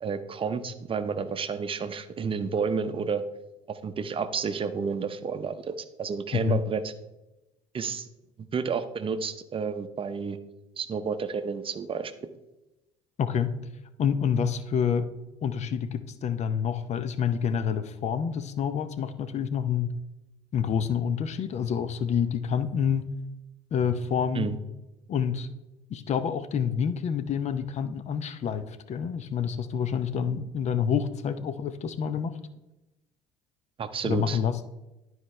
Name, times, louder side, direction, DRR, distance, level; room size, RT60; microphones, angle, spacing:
voice 1, 0.0-3.2 3.7-6.9 7.7-8.1 8.5-10.4 10.8-12.3 24.3-24.6 33.8-34.4, right 5 dB, 35° right, 11 dB, 0.7 m, -30 dB
voice 2, 13.2-13.5 14.0-15.1 15.4-19.9 20.5-23.0 23.7-24.5 25.1-25.5 25.9-32.4 34.0-34.6, left 7 dB, 45° left, 12 dB, 0.7 m, -28 dB
12.0 x 4.7 x 3.2 m, 0.97 s
hypercardioid pair, 70°, 15 cm